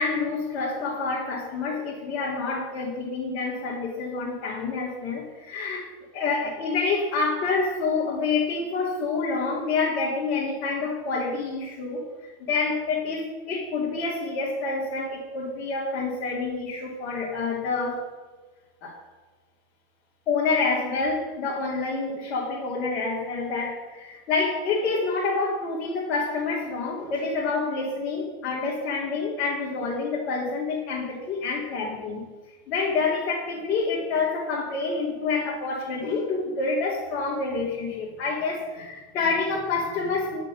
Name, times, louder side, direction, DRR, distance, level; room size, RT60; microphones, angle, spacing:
voice 1, 0.0-5.9 6.1-18.0 18.8-19.0 20.3-32.3 32.7-40.4, left 4 dB, 50° left, -5 dB, 2.9 m, -27 dB
10.5 x 6.5 x 6.5 m, 1.3 s
hypercardioid pair, 115°, 0 cm